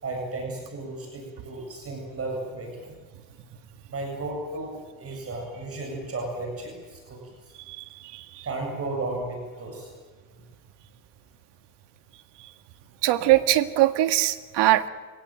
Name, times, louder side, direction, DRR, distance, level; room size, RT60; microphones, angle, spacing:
voice 1, 0.0-2.9 3.9-4.7 5.0-7.2 8.4-9.9 13.2-13.3, right 2 dB, 30° right, 1 dB, 7.9 m, -34 dB
voice 2, 8.1-8.4 13.0-14.9, right 15 dB, 60° right, 10 dB, 1.9 m, -22 dB
28.5 x 17.5 x 9.2 m, 1.5 s
supercardioid pair, 115°, 47 cm